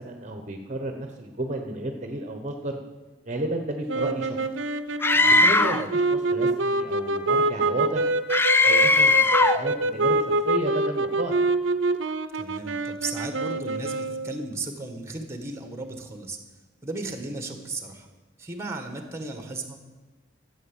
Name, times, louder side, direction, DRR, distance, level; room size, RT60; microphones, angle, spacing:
voice 1, 0.0-2.8 3.2-4.4 5.4-8.1 8.6-11.4, right 1 dB, 40° right, 4 dB, 1.1 m, -32 dB
sound 1, 3.9-14.4, right 2 dB, 80° right, 0.7 m, -26 dB
Screaming, 5.0-5.9 8.3-9.7, left 3 dB, 10° left, 0.4 m, -19 dB
voice 2, 5.1-5.4 12.3-16.4 16.8-18.1 18.4-19.8, right 2 dB, 15° right, 5 dB, 1.5 m, -35 dB
14.0 x 8.1 x 7.4 m, 1.2 s
head